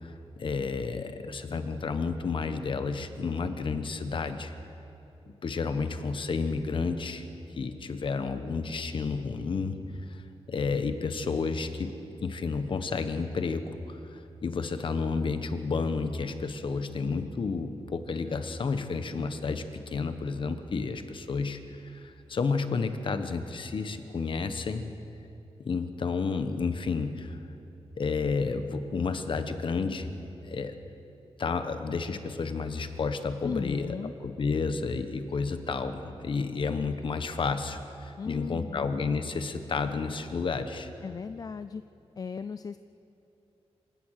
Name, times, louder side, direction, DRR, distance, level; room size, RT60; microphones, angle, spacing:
voice 1, 0.0-4.5 5.4-7.3 7.5-9.8 10.1-10.2 10.5-21.6 21.8-24.9 25.6-27.4 28.0-30.1 30.4-30.8 31.4-34.0 34.2-40.9, left 4 dB, 50° left, 9 dB, 1.2 m, -31 dB
voice 2, 33.4-34.1 38.2-38.9 41.0-41.8 42.2-42.8, left 5 dB, 35° left, 12 dB, 0.4 m, -36 dB
27.0 x 16.5 x 6.6 m, 2.9 s
wide cardioid pair, 165°, 11 cm